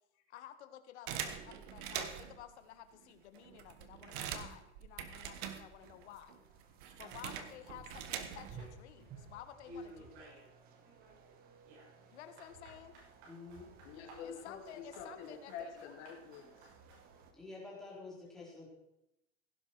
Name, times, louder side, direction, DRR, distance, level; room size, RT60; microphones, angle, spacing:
voice 1, 0.3-6.4 7.0-10.4 12.1-13.0 14.2-15.9, left 11 dB, 65° left, 10 dB, 1.6 m, -53 dB
sound 1, 1.1-2.4 3.0-3.1 3.4-6.0 6.3-8.7, right 9 dB, 45° right, 1.4 m, -43 dB
sound 2, 5.8-17.3, right 5 dB, 25° right, 1.3 m, -58 dB
sound 3, 8.3-9.3 9.6-10.5 10.8-17.1, equal, 65° right, 6.7 m, -55 dB
voice 2, 13.2-13.7 17.3-18.7, left 3 dB, ahead, -6 dB, 3.9 m, -49 dB
voice 3, 13.8-16.7, left 6 dB, 40° left, 1 dB, 2.7 m, -47 dB
16.5 x 11.0 x 4.6 m, 0.87 s
supercardioid pair, 170°, 36 cm